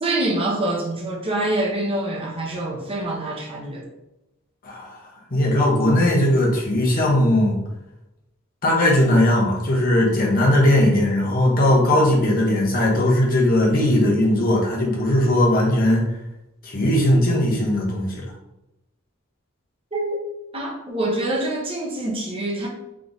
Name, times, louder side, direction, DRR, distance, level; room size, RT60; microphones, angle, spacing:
voice 1, 0.0-3.8 19.9-20.2 20.5-22.7, right 1 dB, 25° right, -2 dB, 1.1 m, -25 dB
voice 2, 4.6-7.6 8.6-16.0 16.6-18.3, left 1 dB, 45° left, -3 dB, 1.3 m, -19 dB
3.7 x 3.3 x 4.0 m, 0.91 s
head